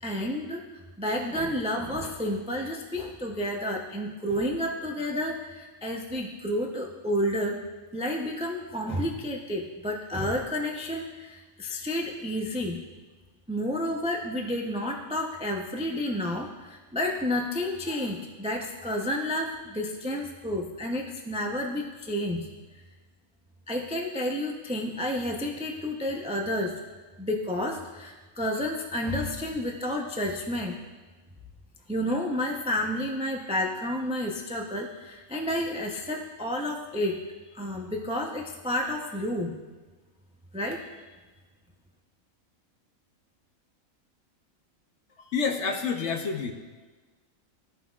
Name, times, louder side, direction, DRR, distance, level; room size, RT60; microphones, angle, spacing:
voice 1, 0.0-0.6 1.0-7.6 7.9-12.8 13.5-22.5 23.7-26.8 27.2-30.7 31.9-37.2 37.5-39.5 40.5-40.8, left 1 dB, 10° right, 1 dB, 0.4 m, -30 dB
voice 2, 45.2-46.5, left 5 dB, 60° left, 4 dB, 1.0 m, -28 dB
15.0 x 5.6 x 2.4 m, 1.3 s
omnidirectional pair, 1.4 m